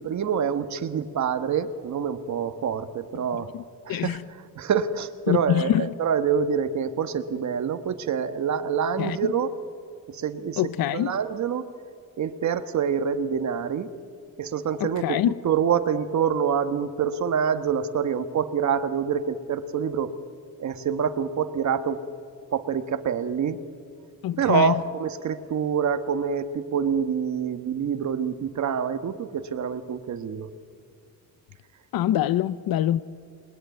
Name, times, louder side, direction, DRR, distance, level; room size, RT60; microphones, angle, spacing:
voice 1, 0.0-3.5 3.8-4.2 4.5-9.5 10.1-10.6 10.9-11.6 12.2-13.9 14.4-15.2 15.4-20.2 20.6-22.0 22.5-23.6 24.4-30.5, right 7 dB, 55° right, 1.4 m, -26 dB
voice 2, 3.1-3.6 3.9-4.2 5.3-5.9 9.0-9.3 10.6-11.2 14.8-15.3 24.2-24.7 31.9-33.0, left 12 dB, 85° left, 0.7 m, -25 dB
28.5 x 21.5 x 9.2 m
wide cardioid pair, 170°, 35 cm